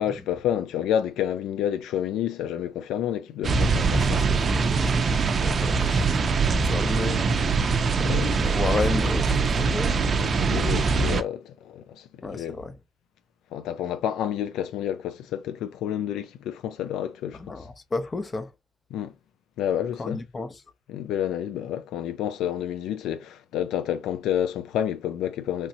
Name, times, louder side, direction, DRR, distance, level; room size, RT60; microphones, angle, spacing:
voice 1, 0.0-4.3 8.0-8.3 9.9-12.6 13.5-17.6 18.9-19.1 19.6-20.2 20.9-25.7, left 10 dB, 90° left, 0.3 m, -29 dB
sound 1, 3.4-11.2, right 4 dB, 45° right, 0.4 m, -23 dB
voice 2, 3.9-7.2 8.0-10.3 12.2-12.8 17.3-18.5 20.0-20.6, left 3 dB, 30° left, 0.6 m, -33 dB
3.1 x 2.7 x 2.6 m
cardioid pair, 90°, 0 cm